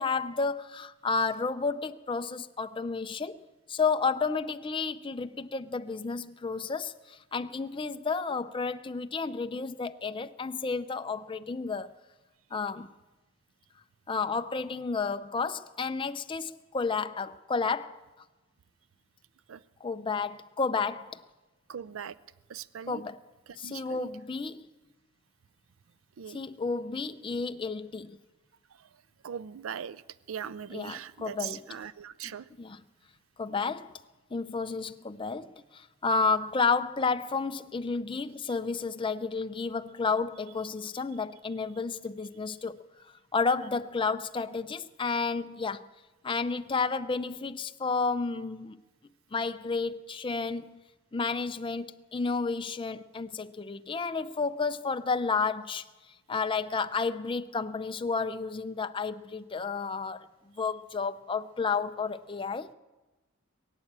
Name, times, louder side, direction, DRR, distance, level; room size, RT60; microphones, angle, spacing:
voice 1, 0.0-3.4 3.7-11.9 12.5-12.9 14.1-18.0 19.8-21.2 22.9-23.2 23.5-24.7 26.3-28.2 30.7-31.6 32.6-32.8 33.4-34.0 34.3-42.8 43.3-45.9 46.2-48.8 49.3-50.8 51.1-55.8 56.3-60.3 60.6-62.7, left 4 dB, 25° left, 0.5 m, -31 dB
voice 2, 21.7-22.2 22.5-23.0 23.5-24.1 26.2-26.4 28.7-28.9 29.2-30.0 30.3-32.5, right 8 dB, 85° right, 0.4 m, -40 dB
22.0 x 8.7 x 7.4 m
head